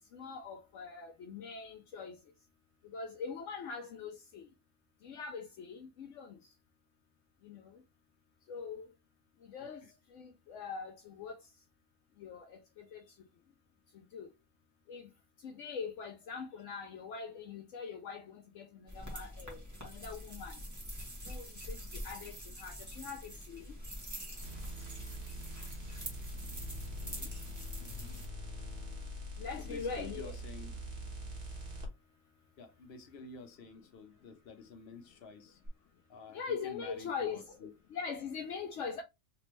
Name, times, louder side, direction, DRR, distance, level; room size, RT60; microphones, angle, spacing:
voice 1, 0.1-2.2 2.9-4.5 5.0-6.4 7.4-7.8 8.5-8.9 9.5-9.8 10.1-11.4 12.2-13.0 14.1-14.3 14.9-15.1 15.4-20.6 21.3-23.7 29.4-30.4 36.3-37.5 37.9-39.0, left 5 dB, 75° left, 0.9 m, -42 dB
voice 2, 9.6-9.9 12.9-13.1 27.0-27.4 29.6-30.8 32.6-35.6 36.1-37.7, left 4 dB, 55° left, 1.1 m, -51 dB
sound 1, 18.9-28.3, equal, 15° right, 1.3 m, -45 dB
sound 2, 24.4-31.9 35.6-35.7, equal, 45° right, 1.4 m, -43 dB
3.4 x 3.1 x 3.0 m
omnidirectional pair, 1.3 m